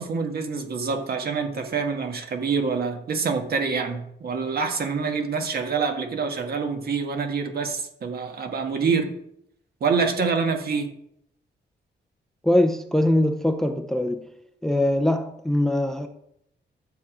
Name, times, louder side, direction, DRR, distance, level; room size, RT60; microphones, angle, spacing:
voice 1, 0.0-9.1 9.8-10.9, right 5 dB, 55° right, 1.6 m, -26 dB
voice 2, 12.4-14.3 14.6-16.1, left 1 dB, ahead, 0.6 m, -22 dB
12.0 x 7.2 x 5.0 m
wide cardioid pair, 160°, 19 cm